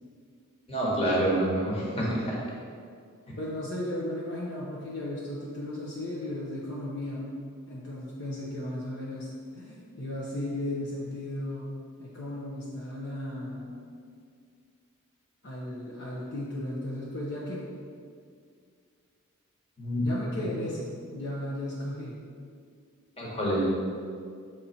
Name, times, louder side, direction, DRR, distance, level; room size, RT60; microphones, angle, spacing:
voice 1, 0.7-2.3 19.8-20.0 23.2-23.6, right 1 dB, 25° left, -5 dB, 1.5 m, -27 dB
voice 2, 3.4-7.4 7.7-9.3 9.5-13.8 15.4-17.7 20.0-22.2, left 1 dB, 55° left, -6 dB, 0.9 m, -35 dB
6.4 x 4.2 x 4.3 m, 2.2 s
head